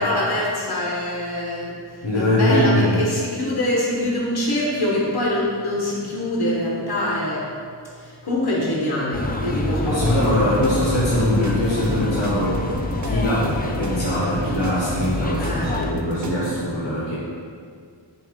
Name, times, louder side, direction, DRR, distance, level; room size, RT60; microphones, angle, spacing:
voice 1, 0.0-1.7 2.1-7.4 8.0-10.3 15.4-15.8, left 1 dB, 50° left, -4 dB, 1.4 m, -24 dB
voice 2, 2.0-3.0 9.8-12.6 13.0-17.2, left 1 dB, 70° left, -7 dB, 1.2 m, -22 dB
sound 1, 9.1-15.9, left 2 dB, 20° left, 0.3 m, -27 dB
sound 2, 9.9-16.6, right 1 dB, 40° right, 0.5 m, -31 dB
6.5 x 2.7 x 5.2 m, 2.2 s
wide cardioid pair, 100°, 47 cm